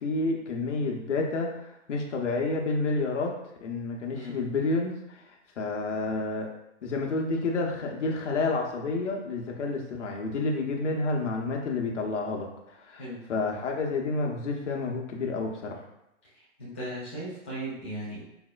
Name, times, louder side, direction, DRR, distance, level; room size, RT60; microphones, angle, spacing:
voice 1, 0.0-1.6 1.9-4.9 5.6-6.5 6.8-12.5 12.9-13.0 13.3-15.8, left 3 dB, 70° left, 1 dB, 0.7 m, -29 dB
voice 2, 16.6-18.2, right 1 dB, 10° left, -8 dB, 0.3 m, -37 dB
4.1 x 2.1 x 2.3 m, 0.87 s
figure-of-eight pair, 120°, 37 cm